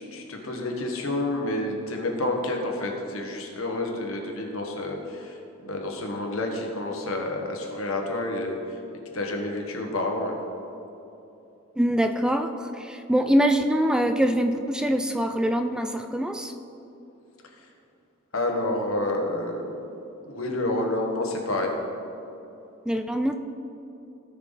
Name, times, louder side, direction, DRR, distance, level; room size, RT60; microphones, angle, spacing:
voice 1, 0.0-8.8 9.1-10.4 18.3-19.8 20.2-21.8, left 2 dB, 75° left, 2 dB, 1.5 m, -29 dB
voice 2, 11.8-16.5 22.9-23.3, equal, 5° right, 7 dB, 0.3 m, -24 dB
17.0 x 5.9 x 4.0 m, 2.9 s
head